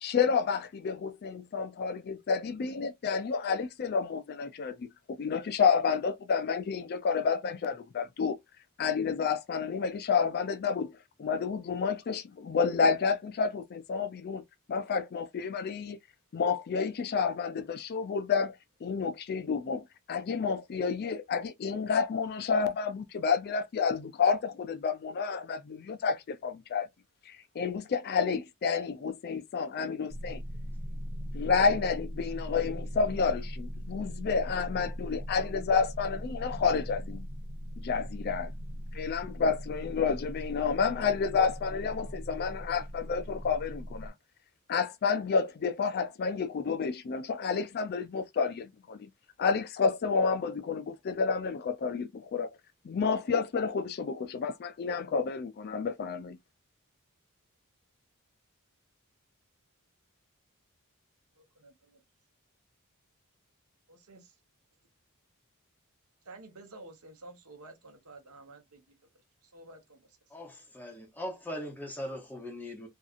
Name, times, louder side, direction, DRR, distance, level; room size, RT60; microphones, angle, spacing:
voice 1, 0.0-8.4 8.8-14.4 14.7-16.0 16.3-18.6 18.8-26.9 27.3-30.4 31.3-37.3 37.8-38.5 38.9-44.1 44.7-49.1 49.4-52.5 52.8-56.4, left 5 dB, 45° left, 0.4 m, -30 dB
sound 1, 30.1-44.1, equal, 55° right, 1.0 m, -39 dB
voice 2, 61.4-62.0 63.9-64.3 66.2-70.3, right 2 dB, 85° right, 1.0 m, -52 dB
voice 3, 70.3-72.9, equal, 10° left, 0.7 m, -40 dB
2.7 x 2.4 x 2.4 m
head